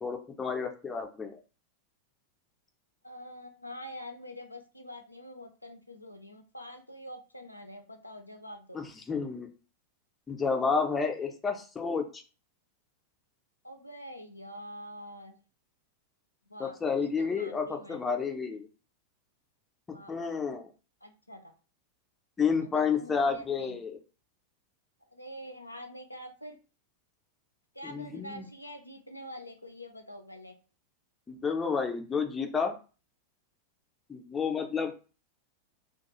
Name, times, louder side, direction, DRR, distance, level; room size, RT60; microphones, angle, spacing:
voice 1, 0.0-1.4 8.7-9.5 10.3-12.2 16.6-18.7 20.1-20.7 22.4-24.0 27.8-28.4 31.3-32.7 34.1-34.9, left 5 dB, 15° left, 4 dB, 0.5 m, -30 dB
voice 2, 3.0-8.8 13.6-15.4 16.5-16.8 17.0-18.0 19.9-20.3 21.0-21.5 22.6-23.8 25.1-26.6 27.7-30.5, equal, 85° left, 4 dB, 0.3 m, -45 dB
2.3 x 2.3 x 2.9 m, 0.35 s
figure-of-eight pair, 90°, 0 cm